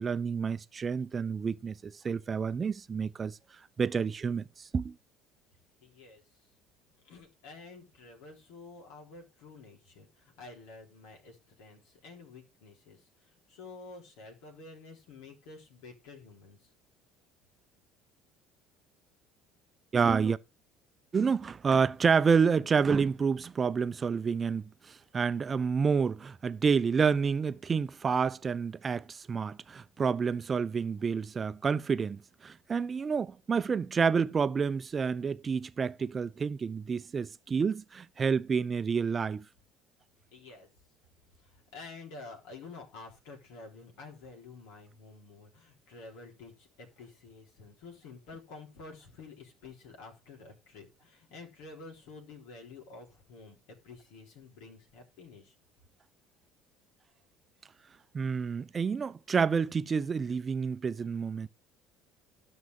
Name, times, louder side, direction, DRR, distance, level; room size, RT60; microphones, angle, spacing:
voice 1, 0.0-3.4 3.8-4.9 19.9-20.4 21.1-39.4 58.1-61.5, right 5 dB, 35° right, 0.7 m, -29 dB
voice 2, 5.8-6.2 7.0-16.6 40.3-40.7 41.4-55.5, left 3 dB, 70° left, 3.8 m, -50 dB
13.0 x 5.6 x 4.7 m
hypercardioid pair, 60°, 0 cm